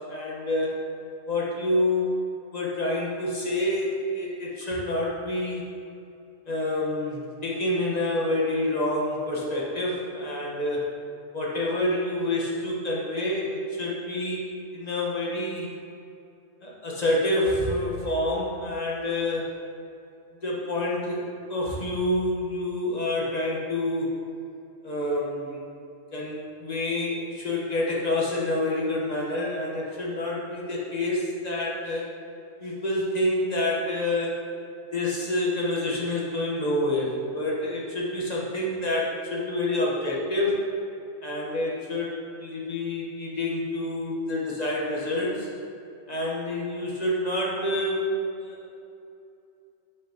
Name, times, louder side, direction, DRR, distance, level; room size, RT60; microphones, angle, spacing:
voice 1, 0.1-0.7 1.3-2.1 2.5-5.6 6.5-10.9 11.3-14.4 14.7-15.7 16.6-19.5 20.4-24.1 24.8-25.6 26.1-32.1 32.6-34.4 34.9-40.6 41.2-42.1 42.4-45.5 46.1-48.1 48.4-48.6, left 1 dB, 30° left, -4 dB, 1.2 m, -27 dB
7.6 x 6.9 x 2.9 m, 2.6 s
omnidirectional pair, 1.4 m